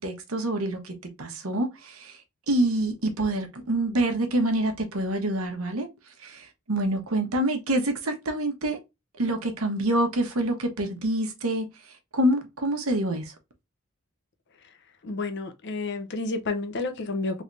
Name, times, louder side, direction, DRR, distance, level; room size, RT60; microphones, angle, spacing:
voice 1, 0.0-2.2 2.5-5.9 6.2-8.8 9.2-13.3, right 1 dB, 80° right, 1.1 m, -27 dB
voice 2, 15.0-17.4, left 3 dB, 55° left, 0.7 m, -30 dB
3.5 x 3.3 x 2.5 m
head